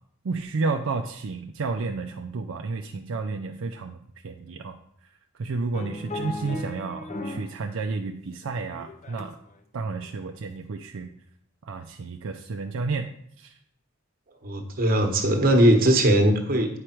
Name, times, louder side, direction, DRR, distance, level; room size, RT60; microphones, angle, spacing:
voice 1, 0.2-4.8 5.4-9.4 9.7-11.1 11.6-13.5, right 4 dB, 65° right, 4 dB, 0.5 m, -31 dB
sound 1, 5.7-7.6 7.9-9.5 10.0-10.2, left 1 dB, 35° left, 0.7 m, -36 dB
voice 2, 14.4-16.8, right 1 dB, 45° right, 4 dB, 1.2 m, -20 dB
8.8 x 4.9 x 4.5 m, 0.67 s
head